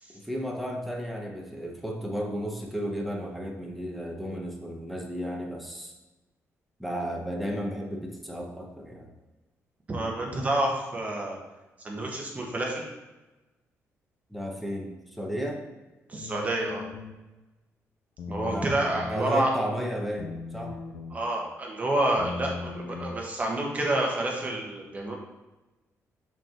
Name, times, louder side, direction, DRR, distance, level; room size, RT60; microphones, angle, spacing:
voice 1, 0.1-5.9 6.8-9.1 14.3-15.7 18.4-18.7 19.0-20.8, equal, ahead, 0 dB, 1.0 m, -33 dB
voice 2, 9.9-11.4 11.8-12.9 16.1-16.8 18.3-19.5 21.1-25.2, right 1 dB, 25° right, -1 dB, 1.4 m, -28 dB
sound 1, 16.2-17.2 18.2-19.2 20.2-21.2 22.2-23.2, left 4 dB, 85° left, 0.9 m, -38 dB
5.9 x 4.5 x 3.7 m, 1.1 s
cardioid pair, 120°, 5 cm